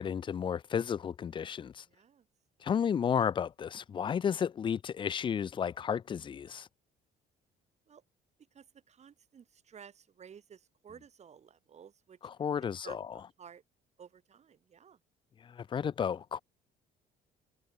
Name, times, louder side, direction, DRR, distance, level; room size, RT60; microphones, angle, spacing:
voice 1, 0.0-1.8 2.6-6.7 12.4-13.0 15.4-16.4, left 7 dB, 30° left, 0.4 m, -32 dB
voice 2, 1.9-2.3 7.9-8.0 8.5-12.2 12.6-13.6 14.0-15.0, right 7 dB, 40° right, 3.2 m, -54 dB
cardioid pair, 110°, 17 cm